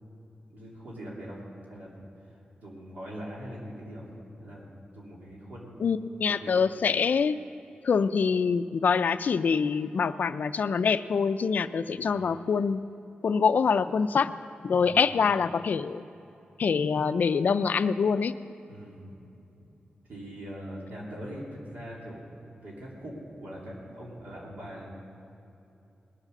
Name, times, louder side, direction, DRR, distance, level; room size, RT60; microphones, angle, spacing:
voice 1, 0.5-1.4 1.7-1.9 2.6-4.1 4.4-5.8 6.3-6.5 11.8-12.1 14.8-15.1 18.7-19.2 20.1-22.3 22.6-24.9, equal, 60° right, -5 dB, 3.1 m, -42 dB
voice 2, 5.8-7.4 7.8-12.8 13.2-14.4 14.6-16.0 16.6-18.3, left 5 dB, 60° left, 11 dB, 0.4 m, -25 dB
20.0 x 7.4 x 6.5 m, 2.8 s
wide cardioid pair, 170°, 3 cm